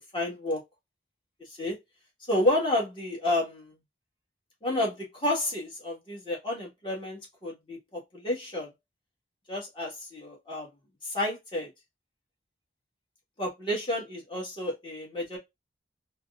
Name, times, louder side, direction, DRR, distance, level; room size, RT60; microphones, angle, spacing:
voice 1, 0.1-0.6 1.6-1.8 2.3-3.7 4.6-8.7 9.5-10.7 11.0-11.7 13.4-15.4, left 1 dB, 25° left, 1.6 m, -30 dB
4.0 x 2.3 x 2.4 m
head